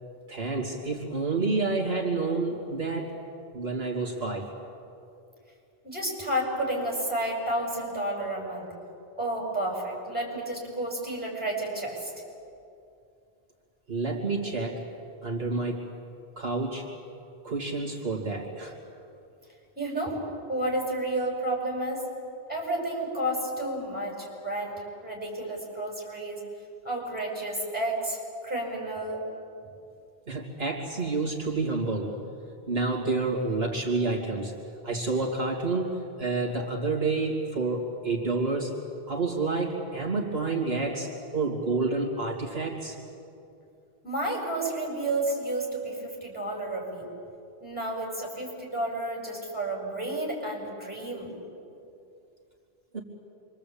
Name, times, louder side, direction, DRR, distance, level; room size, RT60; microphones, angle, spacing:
voice 1, 0.3-3.2 3.5-4.5 13.9-14.8 15.2-15.9 16.4-16.9 17.4-18.8 30.3-32.2 32.7-34.5 34.8-38.8 39.1-43.0 52.9-53.0, right 3 dB, 70° right, -2 dB, 3.0 m, -29 dB
voice 2, 5.8-8.7 9.2-12.1 19.8-20.2 20.5-22.0 22.5-26.5 26.8-29.2 44.0-47.1 47.6-51.3, right 1 dB, 10° right, -2 dB, 7.3 m, -31 dB
27.5 x 24.5 x 8.7 m, 2.6 s
omnidirectional pair, 1.0 m